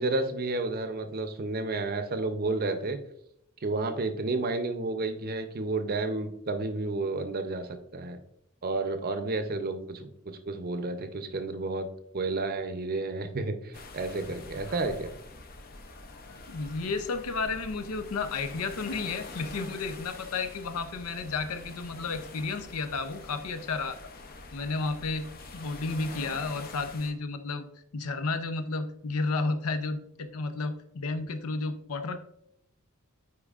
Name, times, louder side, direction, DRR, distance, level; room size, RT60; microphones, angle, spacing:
voice 1, 0.0-3.0 3.6-8.2 8.6-11.9 12.1-15.1, right 3 dB, 45° right, 8 dB, 0.6 m, -31 dB
sound 1, 13.7-27.1, left 3 dB, 45° left, 0.6 m, -45 dB
voice 2, 16.5-24.0 24.5-25.3 25.5-27.7 27.9-32.2, left 3 dB, 85° left, 10 dB, 0.6 m, -32 dB
8.5 x 4.7 x 2.4 m, 0.75 s
head